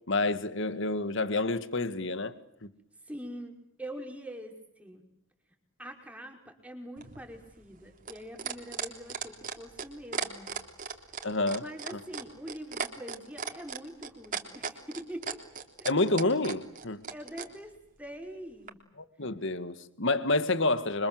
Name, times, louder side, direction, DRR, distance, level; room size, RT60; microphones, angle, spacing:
voice 1, 0.1-2.3 2.6-2.7 11.2-12.0 15.8-17.0 19.0-21.1, left 2 dB, 60° left, 1.9 m, -29 dB
voice 2, 3.0-5.0 5.8-10.5 11.6-15.4 15.8-15.9 17.1-18.8, equal, 5° right, 5.5 m, -44 dB
sound 1, 7.0-17.5 18.7-18.8, right 6 dB, 40° right, 3.6 m, -36 dB
28.5 x 25.5 x 7.9 m
head